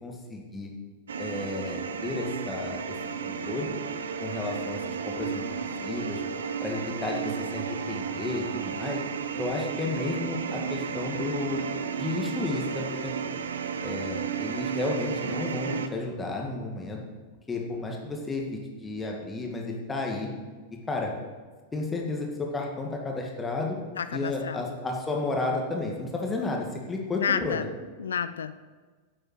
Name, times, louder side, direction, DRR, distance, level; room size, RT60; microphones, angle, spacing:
voice 1, 0.0-0.7 1.2-2.8 3.2-3.7 4.2-6.2 6.6-9.0 9.4-11.6 12.0-13.1 13.8-17.0 17.5-20.3 20.9-21.1 21.7-23.8 24.1-27.7, left 2 dB, 15° left, 0 dB, 2.0 m, -32 dB
sound 1, 1.1-15.9, right 6 dB, 65° right, 0.7 m, -33 dB
voice 2, 24.0-24.7 27.2-27.7 28.0-28.7, left 7 dB, 70° left, 13 dB, 0.4 m, -30 dB
10.5 x 7.6 x 6.2 m, 1.4 s
figure-of-eight pair, 90°, 0 cm